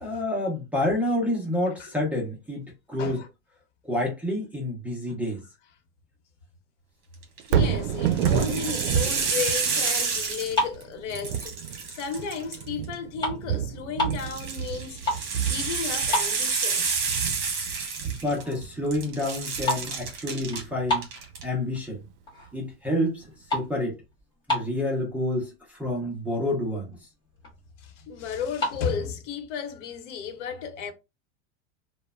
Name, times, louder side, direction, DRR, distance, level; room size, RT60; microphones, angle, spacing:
voice 1, 0.0-2.6 2.9-3.2 3.8-5.4 18.0-21.1 21.4-22.0 22.5-23.3 23.5-24.0 24.5-26.9, left 1 dB, 5° right, 0.4 m, -28 dB
sound 1, 7.2-7.6 8.1-10.8 11.1-12.9 14.1-18.6 18.9-20.6 21.0-21.4, right 5 dB, 50° right, 1.1 m, -29 dB
Thunder, 7.4-21.6 22.1-22.2, right 8 dB, 75° right, 0.5 m, -30 dB
voice 2, 7.5-17.0 17.2-18.2 27.8-30.9, left 6 dB, 75° left, 0.8 m, -34 dB
sound 2, 10.6-11.8 12.3-12.5 12.8-14.3 14.8-15.4 15.6-15.7 16.1-17.0 17.3-17.4 18.0-18.1 18.4-18.7 19.0-21.8 22.3-22.7 23.0-25.0 25.7-25.8 26.0-26.2 26.6-26.7 26.9-27.6 28.4-28.8, left 2 dB, 10° left, 1.4 m, -31 dB
3.0 x 2.0 x 2.2 m
supercardioid pair, 150°, 36 cm